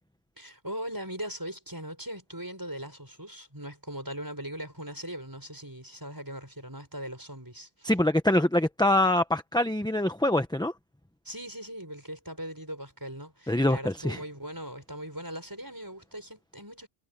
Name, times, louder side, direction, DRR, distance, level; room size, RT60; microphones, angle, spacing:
voice 1, 0.4-7.9 11.2-16.9, equal, 15° right, 5.9 m, -40 dB
voice 2, 7.8-10.7 13.5-14.2, left 1 dB, 5° left, 0.8 m, -24 dB
omnidirectional pair, 1.3 m